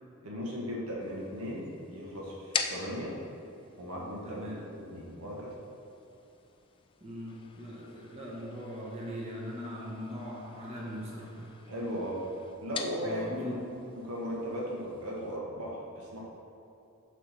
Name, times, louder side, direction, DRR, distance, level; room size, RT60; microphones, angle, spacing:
voice 1, 0.2-3.1 3.8-5.5 11.7-12.2 12.6-13.4 14.0-16.2, equal, 75° right, -4 dB, 1.4 m, -37 dB
sound 1, 1.0-15.4, left 5 dB, 25° left, 0.3 m, -44 dB
voice 2, 4.2-4.6 7.0-11.5 13.0-13.6, equal, 30° right, -5 dB, 1.0 m, -40 dB
7.3 x 3.3 x 5.7 m, 2.7 s
head